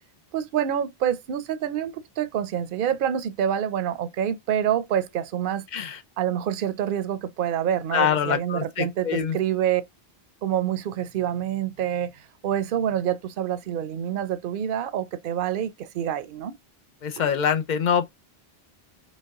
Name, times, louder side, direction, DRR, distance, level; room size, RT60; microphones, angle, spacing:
voice 1, 0.3-5.7 6.2-9.8 10.4-16.5, right 10 dB, 60° right, 0.7 m, -27 dB
voice 2, 7.9-9.4 17.0-18.1, left 7 dB, 55° left, 0.6 m, -24 dB
5.3 x 2.3 x 3.5 m
omnidirectional pair, 1.0 m